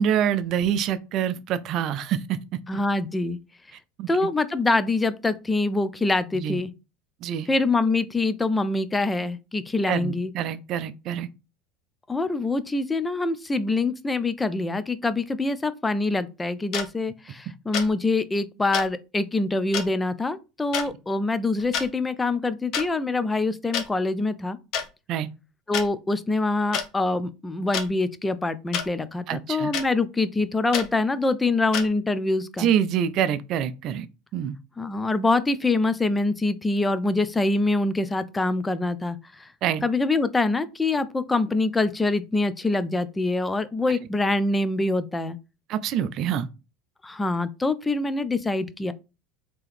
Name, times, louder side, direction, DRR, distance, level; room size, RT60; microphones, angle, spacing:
voice 1, 0.0-2.6 4.0-4.1 6.3-6.6 7.2-7.5 9.9-11.3 25.1-25.3 29.3-29.7 32.6-34.1 34.3-34.6 39.6-39.8 45.7-46.5, right 9 dB, 50° right, 0.5 m, -26 dB
voice 2, 2.7-3.4 4.1-6.7 7.5-10.3 12.1-24.6 25.7-32.7 34.8-39.5 39.8-45.4 47.0-48.9, left 2 dB, 15° left, 0.4 m, -25 dB
sound 1, 16.7-16.9 17.7-17.9 18.7-18.9 19.7-19.9 20.7-20.9 21.6-21.9 22.7-22.9 23.7-23.9 24.7-24.9 25.7-25.9 26.7-26.9 27.7-27.9 28.7-28.9 29.7-29.9 30.7-30.9 31.7-31.9, left 7 dB, 55° left, 0.8 m, -27 dB
3.7 x 2.9 x 3.2 m
hypercardioid pair, 95°, 0 cm